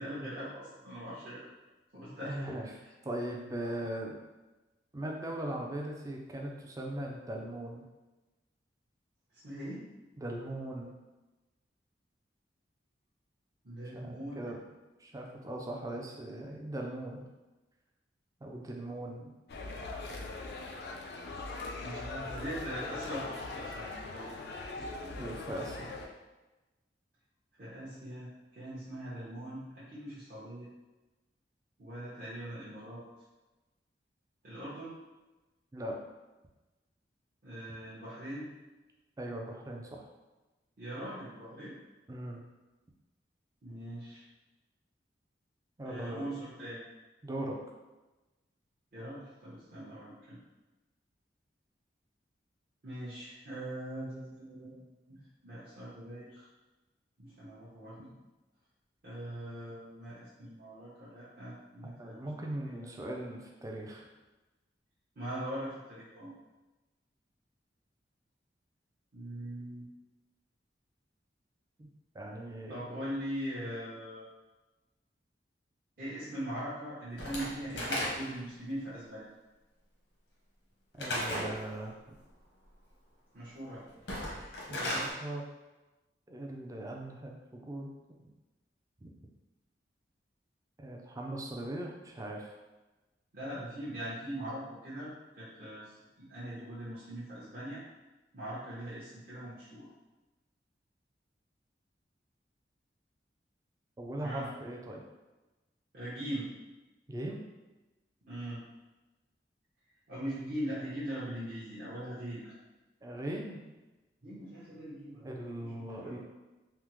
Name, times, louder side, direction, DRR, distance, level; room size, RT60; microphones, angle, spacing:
voice 1, 0.0-1.5 1.9-2.5 9.4-9.8 13.6-14.5 21.8-24.4 27.6-30.7 31.8-33.0 34.4-34.9 37.4-38.5 40.8-41.8 43.6-44.2 45.8-46.8 48.9-50.4 52.8-54.8 55.1-56.5 57.2-58.2 59.0-62.9 65.2-66.3 69.1-69.9 72.7-74.2 76.0-79.3 83.3-83.8 93.3-97.8 98.3-99.9 104.2-104.5 105.9-106.5 108.3-108.6 110.1-112.5 114.2-116.2, right 1 dB, 55° right, -12 dB, 0.8 m, -41 dB
voice 2, 2.3-4.2 4.9-7.8 10.2-10.9 13.9-14.6 15.0-17.2 18.4-19.3 24.8-25.9 35.7-36.0 39.2-40.1 42.1-42.4 45.8-46.3 47.2-47.6 49.7-49.8 62.0-64.1 71.8-71.9 72.1-72.8 81.0-82.2 84.7-85.5 86.3-87.9 89.0-89.1 90.8-92.5 104.0-105.0 107.1-107.4 113.0-113.7 115.2-116.2, right 1 dB, 20° right, 1 dB, 0.3 m, -39 dB
sound 1, 19.5-26.1, left 3 dB, 65° left, 0.4 m, -41 dB
Slam / Wood, 77.2-78.5 81.0-81.6 83.9-85.1, equal, 90° left, 0.9 m, -34 dB
3.4 x 2.0 x 3.0 m, 1.1 s
head